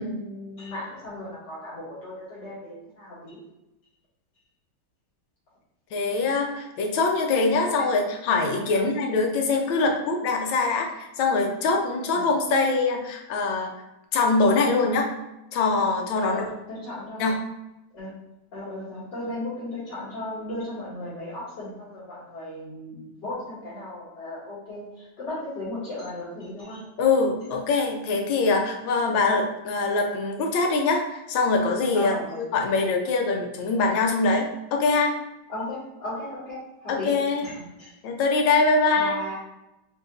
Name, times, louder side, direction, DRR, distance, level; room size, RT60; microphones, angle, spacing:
voice 1, 0.0-3.4 8.7-8.9 12.1-12.2 16.2-17.2 17.9-18.2 18.5-26.8 29.0-29.2 31.9-32.4 34.3-34.4 35.5-37.2 37.4-37.9 39.0-39.3, left 1 dB, 65° left, -10 dB, 2.1 m, -36 dB
voice 2, 5.9-13.7 14.1-15.1 15.5-16.4 17.2-17.4 27.0-35.1 36.9-37.5 38.0-39.3, left 3 dB, 80° left, 2 dB, 1.5 m, -23 dB
3.9 x 2.8 x 3.8 m, 0.95 s
omnidirectional pair, 2.2 m